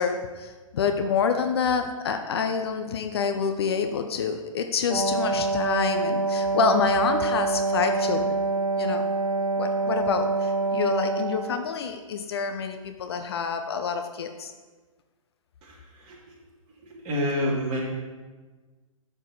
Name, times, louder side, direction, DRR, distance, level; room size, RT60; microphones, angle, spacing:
voice 1, 0.0-8.3 8.8-9.0 9.6-14.5, left 5 dB, 45° left, 6 dB, 0.8 m, -27 dB
Wind instrument woodwind instrument, 4.9-11.7, right 3 dB, 90° right, 0.8 m, -26 dB
voice 2, 15.6-16.2 16.8-17.8, left 1 dB, 25° right, -4 dB, 2.7 m, -28 dB
11.5 x 7.1 x 4.1 m, 1.3 s
figure-of-eight pair, 120°, 18 cm